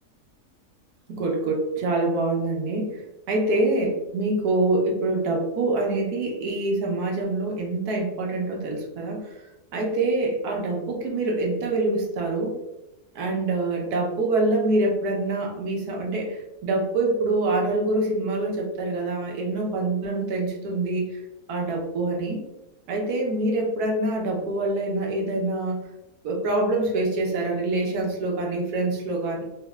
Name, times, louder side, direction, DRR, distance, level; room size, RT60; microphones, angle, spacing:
voice 1, 1.1-3.0 3.3-9.2 9.7-12.6 13.1-21.1 21.5-22.4 22.9-25.8 26.2-29.4, right 2 dB, 85° right, 0 dB, 1.2 m, -25 dB
3.9 x 2.0 x 2.2 m, 0.91 s
omnidirectional pair, 1.6 m